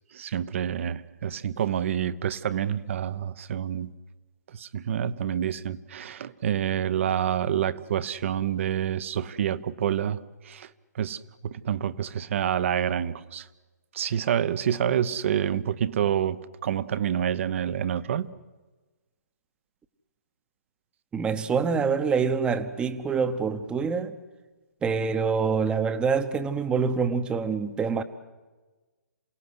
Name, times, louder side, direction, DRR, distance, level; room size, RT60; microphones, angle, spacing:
voice 1, 0.1-3.9 4.5-10.7 10.9-13.5 13.9-18.3, right 9 dB, 45° right, 15 dB, 0.9 m, -28 dB
voice 2, 21.1-24.1 24.8-28.0, right 5 dB, 10° right, 11 dB, 1.0 m, -26 dB
28.0 x 17.0 x 8.1 m, 1.2 s
figure-of-eight pair, 135°, 9 cm